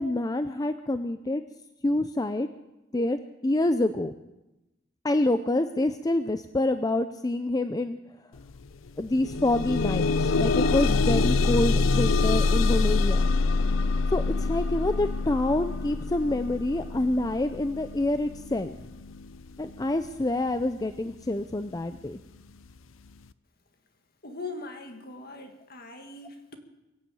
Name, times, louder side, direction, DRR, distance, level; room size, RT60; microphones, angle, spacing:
voice 1, 0.0-1.4 1.8-2.5 2.9-4.1 5.0-8.0 9.0-13.3 14.1-18.8 19.6-22.2, left 2 dB, 20° left, 9 dB, 0.5 m, -27 dB
sound 1, 8.4-8.5 8.9-19.9 20.7-20.8 21.3-21.4, left 3 dB, 80° left, 0.6 m, -25 dB
voice 2, 24.2-26.6, left 3 dB, 50° left, 5 dB, 1.8 m, -40 dB
22.5 x 7.6 x 8.5 m, 1.0 s
head